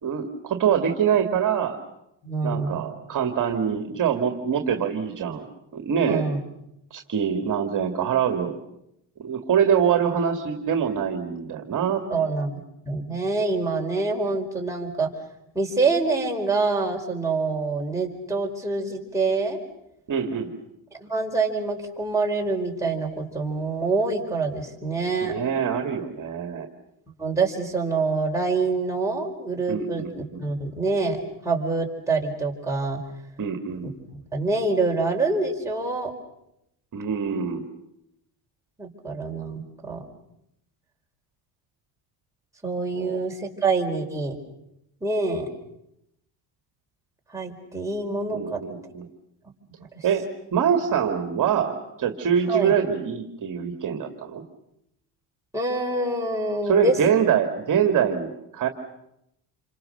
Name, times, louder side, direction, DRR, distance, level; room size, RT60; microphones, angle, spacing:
voice 1, 0.0-1.8 2.4-5.5 5.7-6.3 6.9-8.6 9.2-12.0 20.1-20.5 25.2-26.7 29.7-30.4 33.4-33.9 36.9-37.6 42.9-43.2 48.3-49.1 50.0-50.3 50.5-54.4 56.6-58.7, right 8 dB, 40° right, 6 dB, 2.2 m, -24 dB
voice 2, 2.2-2.8 6.1-6.4 12.1-15.1 15.5-19.6 21.0-25.3 27.2-31.2 31.4-33.0 34.3-36.1 38.8-40.1 42.6-44.4 45.0-45.5 47.3-48.6 49.8-50.1 52.5-52.7 55.5-57.2, right 3 dB, 5° right, -1 dB, 4.5 m, -26 dB
28.5 x 25.0 x 6.7 m, 0.81 s
cardioid pair, 115°, 47 cm